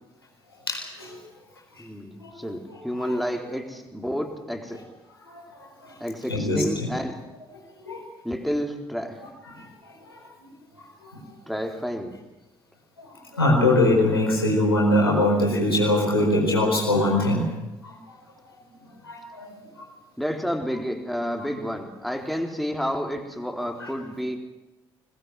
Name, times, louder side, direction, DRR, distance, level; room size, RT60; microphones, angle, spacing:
voice 1, 0.7-1.2 2.2-2.4 5.3-5.4 5.8-5.9 6.3-6.9 7.9-8.0 10.0-10.1 13.0-17.5 17.8-18.0 19.0-19.5 23.8-23.9, left 1 dB, 90° left, -2 dB, 4.7 m, -22 dB
voice 2, 1.8-4.8 6.0-7.2 8.2-9.2 11.5-12.1 20.2-24.4, equal, ahead, 2 dB, 4.0 m, -30 dB
21.0 x 21.0 x 7.8 m, 1.0 s
figure-of-eight pair, 40°, 12 cm